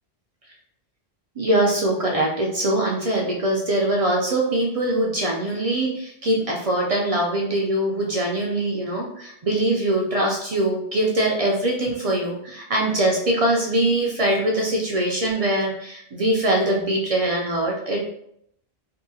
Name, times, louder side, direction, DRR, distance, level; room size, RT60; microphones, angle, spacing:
voice 1, 1.4-18.1, right 1 dB, 60° right, -1 dB, 0.3 m, -22 dB
2.7 x 2.6 x 2.6 m, 0.74 s
omnidirectional pair, 1.1 m